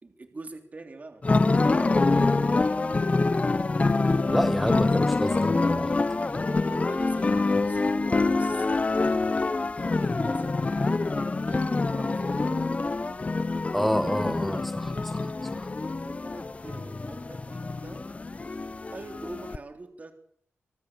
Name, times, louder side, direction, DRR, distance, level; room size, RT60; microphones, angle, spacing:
voice 1, 0.0-2.7 6.5-8.9 9.6-12.7 16.0-18.1 18.5-18.6 18.9-20.1, right 3 dB, 35° right, 3.3 m, -44 dB
sound 1, 1.2-19.6, left 3 dB, 30° left, 0.9 m, -26 dB
voice 2, 4.3-5.9 13.7-15.7, equal, ahead, 1.4 m, -29 dB
25.5 x 13.5 x 8.8 m
cardioid pair, 85°, 4 cm